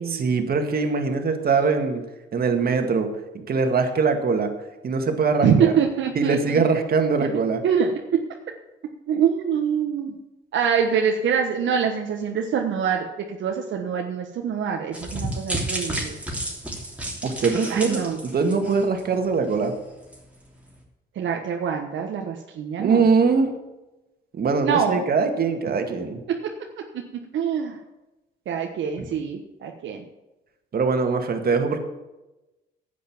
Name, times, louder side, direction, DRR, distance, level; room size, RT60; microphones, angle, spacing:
voice 1, 0.1-2.0 2.3-3.1 3.5-4.5 4.8-5.7 6.2-7.6 17.2-19.7 22.8-23.5 24.4-26.2 30.7-31.8, right 4 dB, 50° right, 5 dB, 2.0 m, -22 dB
voice 2, 5.4-6.6 7.2-7.3 7.6-8.2 9.1-10.1 10.5-16.2 17.7-18.2 21.2-23.0 24.6-25.0 26.3-27.8 28.5-30.0, right 7 dB, 70° right, 2 dB, 1.3 m, -25 dB
sound 1, 14.9-19.2 19.5-19.7 20.1-20.2, right 1 dB, 5° right, 3.2 m, -31 dB
10.5 x 8.4 x 7.2 m, 1.0 s
cardioid pair, 90°, 20 cm